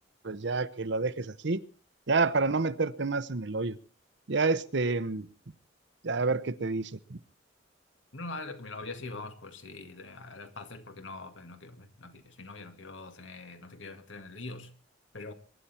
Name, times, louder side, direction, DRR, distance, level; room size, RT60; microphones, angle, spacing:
voice 1, 0.2-1.6 2.1-3.8 4.3-5.3 6.0-7.2, right 3 dB, 65° right, 0.8 m, -29 dB
voice 2, 8.1-14.7 15.1-15.3, left 3 dB, 80° left, 2.1 m, -43 dB
23.0 x 11.5 x 4.4 m
head